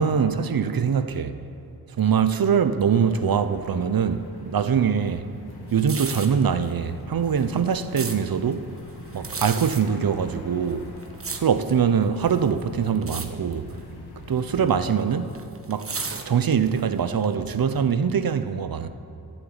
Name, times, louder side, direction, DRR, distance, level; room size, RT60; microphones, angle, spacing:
voice 1, 0.0-1.4 2.0-5.2 5.7-8.6 9.1-10.9 11.3-13.7 14.3-15.3 15.7-15.9 16.3-18.9, right 7 dB, 65° right, 0.8 m, -23 dB
sound 1, 2.9-15.2, left 2 dB, 80° left, 2.0 m, -44 dB
sound 2, 5.7-6.4 7.3-8.2 9.1-9.8 10.6-11.8 12.3-12.6 13.0-13.3 13.5-13.8 14.7-16.8 17.2-17.3, right 4 dB, 35° right, 1.2 m, -33 dB
15.0 x 7.6 x 8.9 m
wide cardioid pair, 100°, 38 cm